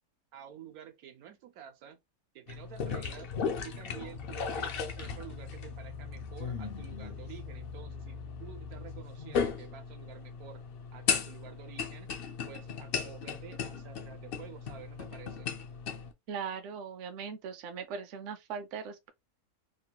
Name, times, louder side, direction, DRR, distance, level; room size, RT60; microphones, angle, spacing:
voice 1, 0.3-2.0 2.3-3.3 3.6-10.6 10.9-12.1 12.5-15.5, right 10 dB, 85° right, 1.2 m, -50 dB
sound 1, 2.5-16.1, left 6 dB, 65° left, 0.5 m, -37 dB
sound 2, 4.1-9.3 9.9-10.0, left 5 dB, 80° left, 1.1 m, -45 dB
voice 2, 16.3-19.1, right 6 dB, 65° right, 0.8 m, -39 dB
3.0 x 2.2 x 2.8 m
omnidirectional pair, 1.5 m